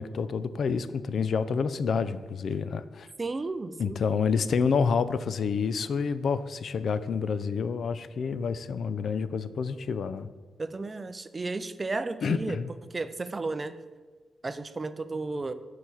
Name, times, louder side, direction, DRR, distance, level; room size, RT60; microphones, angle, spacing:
voice 1, 0.0-3.1 3.8-10.3 12.2-12.7, left 5 dB, 65° left, 13 dB, 0.4 m, -28 dB
voice 2, 3.2-4.0 10.6-12.6 12.9-13.8 14.4-15.5, right 3 dB, 30° right, 12 dB, 0.4 m, -33 dB
6.6 x 4.6 x 5.5 m, 1.4 s
cardioid pair, 95°, 0 cm